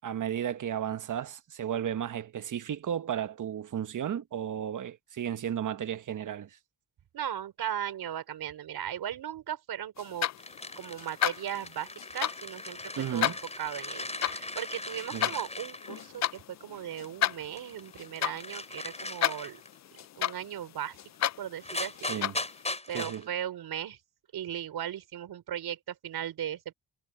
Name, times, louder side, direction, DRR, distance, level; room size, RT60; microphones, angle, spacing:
voice 1, 0.0-6.6 13.0-13.4 15.1-15.3 22.1-22.3 22.9-23.3, right 9 dB, 50° right, 1.2 m, -34 dB
voice 2, 7.1-10.3 10.8-12.8 13.1-19.6 20.2-21.0 21.2-22.2 22.9-24.0 24.3-26.7, right 10 dB, 70° right, 4.4 m, -37 dB
sound 1, 10.0-22.8, left 12 dB, 45° left, 0.5 m, -34 dB
sound 2, 10.4-16.4 17.0-19.8 21.2-21.3 21.6-23.2, left 2 dB, 15° left, 6.2 m, -39 dB
cardioid pair, 80°, 39 cm